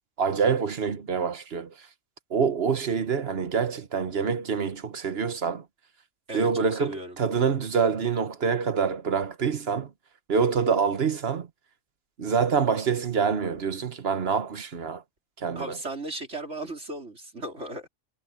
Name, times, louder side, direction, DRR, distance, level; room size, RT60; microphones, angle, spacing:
voice 1, 0.2-1.7 2.3-5.6 6.3-9.9 10.3-11.5 12.2-15.0 15.4-15.6, right 6 dB, 60° right, 1.5 m, -26 dB
voice 2, 6.3-7.2 10.4-10.8 15.5-17.9, right 2 dB, 75° right, 4.6 m, -36 dB
omnidirectional pair, 1.2 m